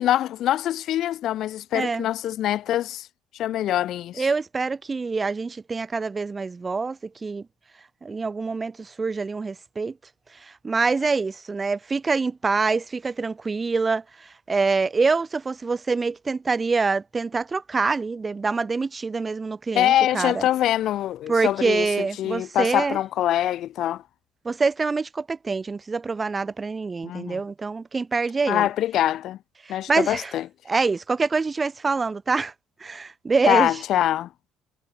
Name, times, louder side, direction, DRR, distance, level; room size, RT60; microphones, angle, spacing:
voice 1, 0.0-3.1 3.3-4.3 19.7-24.0 27.0-27.4 28.5-29.4 29.7-30.5 33.5-34.3, left 12 dB, 65° left, 0.3 m, -24 dB
voice 2, 1.7-2.1 4.2-7.5 8.0-10.0 10.4-20.4 21.3-23.0 24.4-28.7 29.7-30.3 30.7-32.5 32.8-33.7, right 4 dB, 25° right, 0.4 m, -25 dB
supercardioid pair, 85°, 0 cm